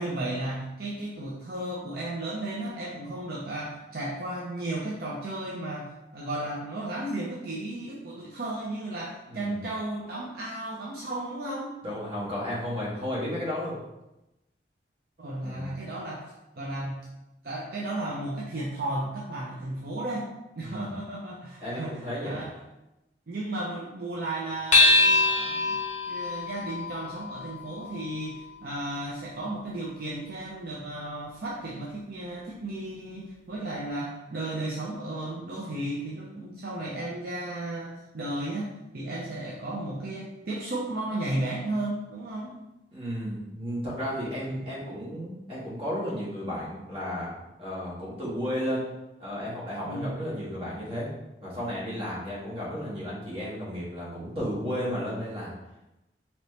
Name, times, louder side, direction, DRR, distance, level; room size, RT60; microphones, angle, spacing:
voice 1, 0.0-11.8 15.2-16.2 16.6-16.9 17.4-20.3 20.5-22.5 23.3-38.7 38.9-42.6 44.4-44.6 49.8-50.1, right 1 dB, 55° right, -5 dB, 0.6 m, -34 dB
voice 2, 9.3-9.6 11.8-13.8 15.4-15.7 20.6-20.9 21.6-22.5 42.9-48.8 49.2-51.1 51.4-55.5, equal, 30° right, -7 dB, 1.4 m, -33 dB
sound 1, 24.7-29.5, left 3 dB, 40° left, 0.7 m, -25 dB
4.1 x 2.9 x 3.2 m, 0.95 s
head